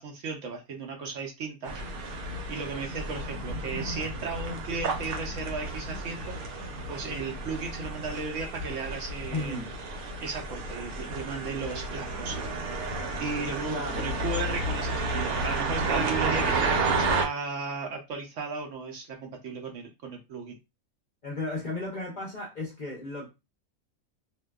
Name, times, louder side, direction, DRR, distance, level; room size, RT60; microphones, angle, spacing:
voice 1, 0.0-1.8 2.5-6.4 6.9-9.6 10.2-12.5 13.2-20.6, right 4 dB, 65° right, 0.8 m, -35 dB
sound 1, 1.6-17.3, right 3 dB, 85° right, 1.1 m, -31 dB
voice 2, 9.3-9.7 13.7-14.2 16.2-16.4 21.2-23.3, left 2 dB, 50° left, 0.5 m, -34 dB
2.6 x 2.2 x 2.2 m
omnidirectional pair, 1.5 m